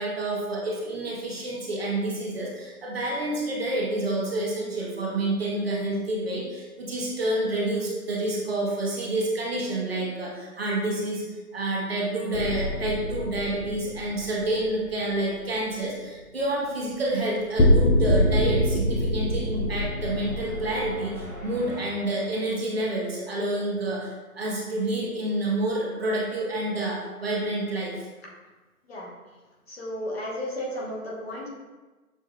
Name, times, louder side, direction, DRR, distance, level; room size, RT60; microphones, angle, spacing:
voice 1, 0.0-11.2 11.5-27.9, right 1 dB, 40° right, -4 dB, 0.8 m, -28 dB
sound 1, 12.3-15.1 17.6-21.7, left 1 dB, 70° left, 0.9 m, -25 dB
sound 2, 18.2-23.1, right 1 dB, ahead, 0.7 m, -44 dB
voice 2, 29.7-31.5, left 1 dB, 40° left, -4 dB, 1.0 m, -33 dB
6.5 x 2.6 x 2.2 m, 1.2 s
hypercardioid pair, 160°, 46 cm